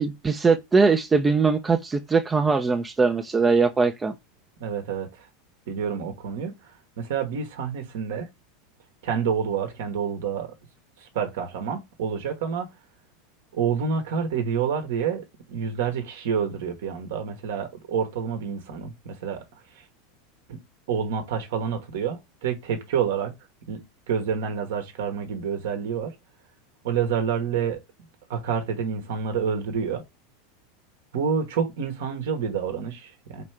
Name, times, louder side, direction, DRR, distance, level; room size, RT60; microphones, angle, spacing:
voice 1, 0.0-4.1, right 4 dB, 20° right, 0.5 m, -21 dB
voice 2, 4.6-5.3 5.7-8.3 9.0-10.5 11.0-12.7 13.5-19.9 20.5-20.6 20.9-23.3 23.7-23.8 24.1-26.1 26.8-27.8 28.3-30.0 31.1-33.4, right 7 dB, 65° right, 1.1 m, -28 dB
5.1 x 3.2 x 3.2 m
hypercardioid pair, 85°, 0 cm